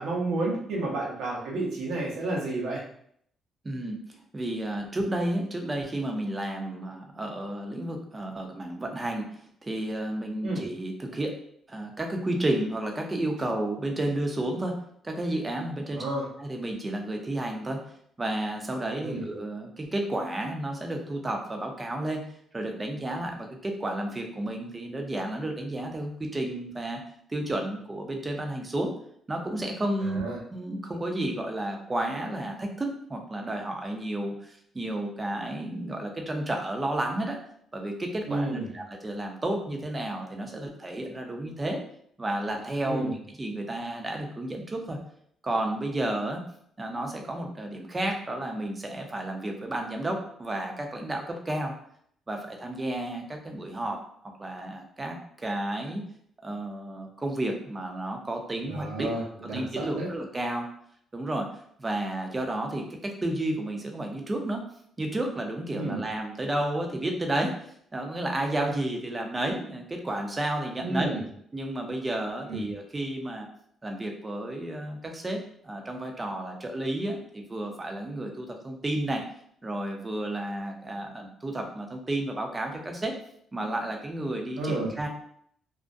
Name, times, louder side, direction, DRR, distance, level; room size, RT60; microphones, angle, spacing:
voice 1, 0.0-2.8 10.4-10.6 15.9-16.3 19.0-19.2 30.0-30.4 38.3-38.7 42.8-43.1 58.6-60.1 65.7-66.0 70.8-71.2 72.5-72.6 84.6-84.9, right 2 dB, 80° right, -3 dB, 0.8 m, -31 dB
voice 2, 3.6-11.4 11.7-16.0 16.4-17.8 18.2-22.2 22.5-27.0 27.3-28.9 29.3-30.2 30.5-37.4 37.7-41.8 42.2-45.0 45.4-46.4 46.8-51.7 52.3-56.0 56.4-59.1 59.4-60.7 61.1-61.5 61.8-64.6 65.0-67.5 67.9-71.1 71.5-73.5 73.8-75.4 75.6-79.2 79.6-83.1 83.5-85.1, right 1 dB, 25° right, 3 dB, 0.5 m, -32 dB
2.4 x 2.1 x 2.5 m, 0.66 s
cardioid pair, 90°, 0 cm